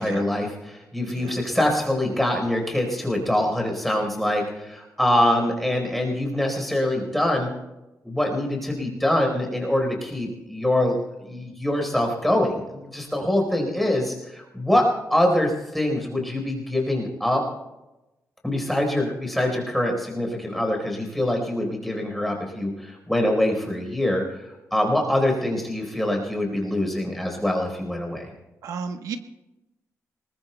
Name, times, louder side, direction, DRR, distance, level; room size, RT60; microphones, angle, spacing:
voice 1, 0.0-7.5 8.0-17.4 18.4-28.3, left 1 dB, ahead, 1 dB, 4.2 m, -24 dB
voice 2, 28.6-29.2, right 6 dB, 85° right, 7 dB, 1.2 m, -33 dB
26.0 x 21.0 x 2.3 m, 1.0 s
wide cardioid pair, 150°, 6 cm